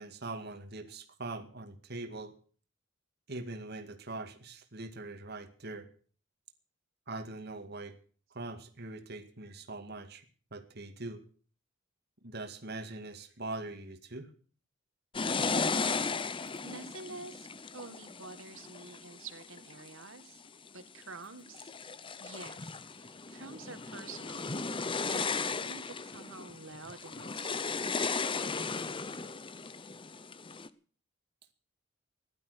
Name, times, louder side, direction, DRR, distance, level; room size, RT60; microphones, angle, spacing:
voice 1, 0.0-2.3 3.3-5.9 7.1-7.9 8.3-10.2 10.5-11.2 12.2-14.3, right 2 dB, 55° right, 7 dB, 2.1 m, -42 dB
sound 1, 15.1-19.9 20.5-21.0 21.5-30.7, left 4 dB, 25° left, 0.7 m, -36 dB
voice 2, 16.6-17.5 17.7-20.4 20.7-21.7 22.2-24.8 25.1-27.9, right 3 dB, 85° right, 10 dB, 2.1 m, -48 dB
16.0 x 12.0 x 6.6 m, 0.42 s
head